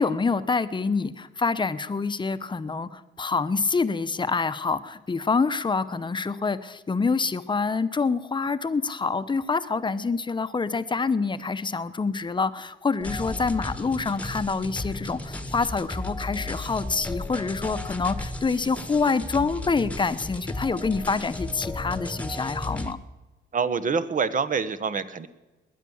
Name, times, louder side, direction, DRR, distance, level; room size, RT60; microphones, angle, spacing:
voice 1, 0.0-23.0, left 4 dB, 25° left, 12 dB, 0.9 m, -26 dB
sound 1, 13.0-22.9, left 1 dB, 5° left, 1.3 m, -34 dB
voice 2, 23.5-25.3, right 5 dB, 40° right, 12 dB, 1.1 m, -26 dB
20.5 x 9.3 x 7.2 m, 1.1 s
cardioid pair, 90°, 20 cm